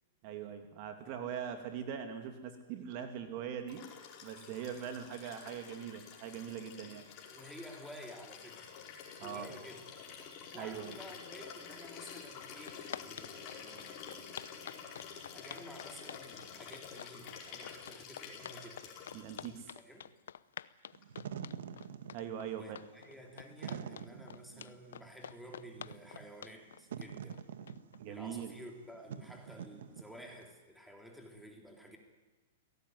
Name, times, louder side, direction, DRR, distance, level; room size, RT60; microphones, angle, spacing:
voice 1, 0.2-3.8 4.2-7.1 9.2-9.5 10.5-10.9 19.1-19.7 22.1-22.8 28.0-28.6, right 8 dB, 45° right, 6 dB, 2.6 m, -41 dB
Liquid, 3.7-19.7 21.0-21.1, left 7 dB, 35° left, 4.9 m, -49 dB
voice 2, 7.3-8.7 9.2-10.0 10.5-14.3 15.3-19.0 19.8-20.0 22.5-27.4 28.1-32.0, equal, ahead, 2 dB, 3.5 m, -52 dB
sound 1, 12.0-12.1 12.4-28.0, left 9 dB, 85° left, 0.7 m, -48 dB
Wind / Fire, 20.9-30.5, right 8 dB, 80° right, 1.6 m, -46 dB
22.5 x 17.5 x 9.6 m, 1.2 s
hypercardioid pair, 145°, 0 cm